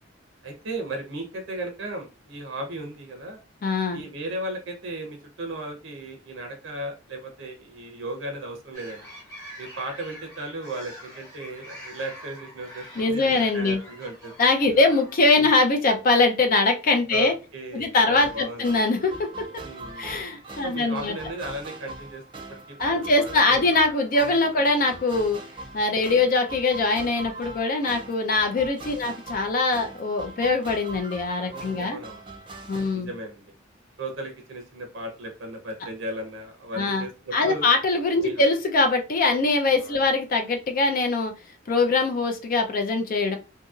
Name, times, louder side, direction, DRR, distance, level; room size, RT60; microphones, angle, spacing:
voice 1, 0.4-3.4 3.9-9.0 9.6-14.3 15.4-15.5 17.1-18.6 19.6-20.1 20.6-22.2 22.5-23.6 24.5-24.6 26.0-26.1 31.4-32.3 32.8-33.4 34.0-37.7 38.2-38.4 39.8-40.0, right 1 dB, 70° right, 3 dB, 0.6 m, -36 dB
voice 2, 3.6-4.0 12.9-13.8 14.4-17.3 17.7-19.6 20.0-21.1 22.8-25.4 25.7-32.0 32.7-33.1 36.7-37.1 37.3-41.3 41.7-43.4, left 3 dB, 45° left, 5 dB, 0.4 m, -22 dB
sound 1, 8.7-15.6, equal, 20° left, 1.0 m, -45 dB
sound 2, 18.2-32.9, right 2 dB, 25° right, 0.4 m, -42 dB
2.8 x 2.6 x 2.3 m, 0.31 s
head